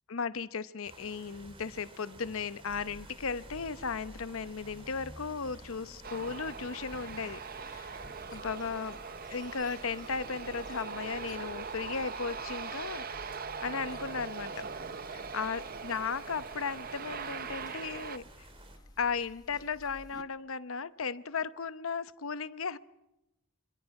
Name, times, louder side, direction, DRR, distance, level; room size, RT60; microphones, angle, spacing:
voice 1, 0.1-8.0 8.3-9.0 9.3-13.3 13.6-14.7 15.1-18.2 19.0-22.8, left 5 dB, 80° left, 14 dB, 0.8 m, -36 dB
sound 1, 0.8-18.8, right 2 dB, 25° right, 3.1 m, -54 dB
sound 2, 2.7-20.2, left 1 dB, 20° left, 1.1 m, -55 dB
Aircraft, 6.0-18.2, right 5 dB, 45° right, 0.8 m, -41 dB
27.0 x 26.0 x 4.8 m, 0.93 s
head